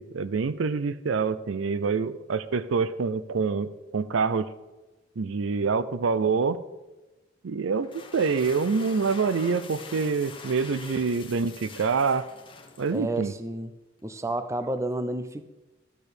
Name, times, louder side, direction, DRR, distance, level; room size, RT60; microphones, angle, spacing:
voice 1, 0.0-4.5 5.2-6.6 7.4-12.2 12.8-13.3, right 5 dB, 70° right, 14 dB, 0.5 m, -26 dB
sound 1, 7.7-13.3, left 4 dB, 25° left, 1.0 m, -44 dB
voice 2, 12.9-13.7 14.0-15.5, right 2 dB, 15° right, 11 dB, 0.5 m, -30 dB
12.0 x 4.4 x 6.7 m, 1.1 s
head